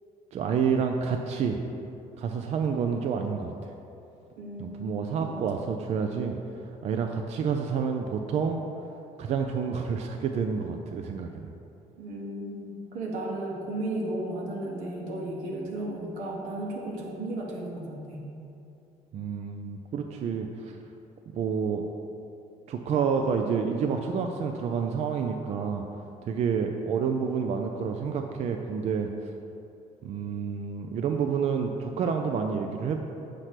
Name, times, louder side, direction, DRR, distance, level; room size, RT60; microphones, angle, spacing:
voice 1, 0.3-1.6 2.2-3.7 4.6-8.7 9.2-11.5 19.1-20.8 21.3-21.9 22.7-25.8 26.2-29.1 30.0-33.0, right 6 dB, 50° right, 4 dB, 0.4 m, -29 dB
voice 2, 4.4-5.5 12.0-18.3, right 1 dB, 90° right, -2 dB, 1.2 m, -34 dB
6.6 x 3.0 x 5.8 m, 2.7 s
cardioid pair, 95°, 14 cm